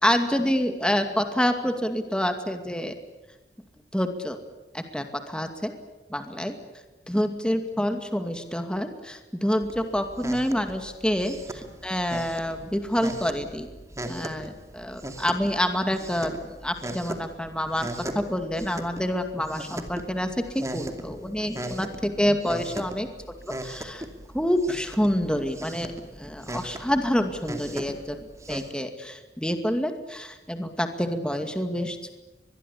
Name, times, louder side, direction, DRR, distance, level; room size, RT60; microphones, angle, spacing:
voice 1, 0.0-2.9 3.9-4.4 4.7-5.7 6.1-6.6 7.1-13.7 14.1-17.9 18.1-23.1 23.5-24.1 24.3-25.9 26.2-28.2 28.5-32.1, equal, 5° left, 6 dB, 2.3 m, -27 dB
sound 1, 9.6-28.7, right 1 dB, 20° right, 2.6 m, -39 dB
24.5 x 21.5 x 8.5 m, 1.1 s
head